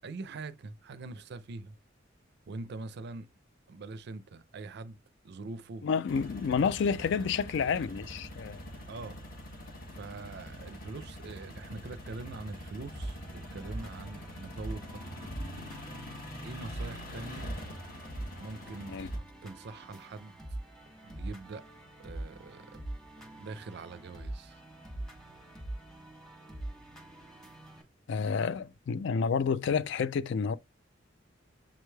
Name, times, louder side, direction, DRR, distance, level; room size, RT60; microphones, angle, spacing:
voice 1, 0.0-1.7 2.5-3.3 3.7-5.0 5.2-5.9 8.9-9.2 9.9-15.8 16.4-17.5 18.4-18.9 19.4-20.4 21.0-21.6 22.0-22.8 23.2-24.6, right 3 dB, 60° right, 0.4 m, -43 dB
voice 2, 5.8-8.6 18.9-19.1 28.1-30.6, left 6 dB, 65° left, 0.3 m, -29 dB
sound 1, 6.1-19.2, equal, 50° left, 1.0 m, -44 dB
sound 2, 12.9-27.8, right 1 dB, 5° left, 1.1 m, -43 dB
7.2 x 3.1 x 2.2 m
head